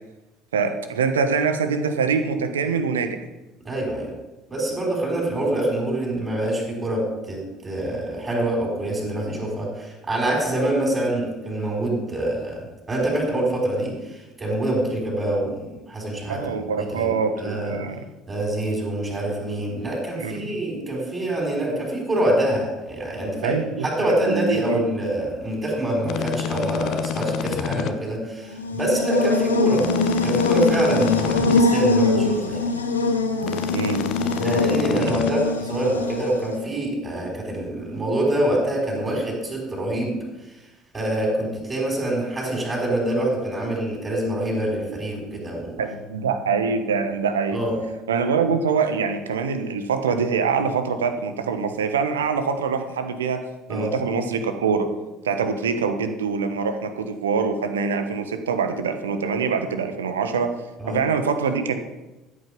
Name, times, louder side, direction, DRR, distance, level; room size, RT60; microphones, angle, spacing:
voice 1, 0.5-3.2 16.3-18.0 20.2-20.5 23.4-24.8 33.7-34.1 45.8-47.6 48.1-53.4 53.7-54.9 55.2-60.5 60.9-61.8, right 5 dB, 75° right, 8 dB, 1.2 m, -24 dB
voice 2, 3.6-4.1 4.5-16.5 16.8-17.1 17.4-17.8 18.3-29.9 30.2-32.8 34.4-40.6 40.9-45.8 47.5-47.8 53.7-53.9 60.8-61.0, right 1 dB, 20° right, 0 dB, 5.4 m, -25 dB
sound 1, 26.0-27.9 29.7-31.6 33.4-35.3, left 9 dB, 50° left, 0.8 m, -28 dB
Buzz, 28.5-36.6, left 3 dB, 80° left, 1.0 m, -23 dB
13.5 x 8.7 x 5.3 m, 1.1 s
figure-of-eight pair, 60°, 0 cm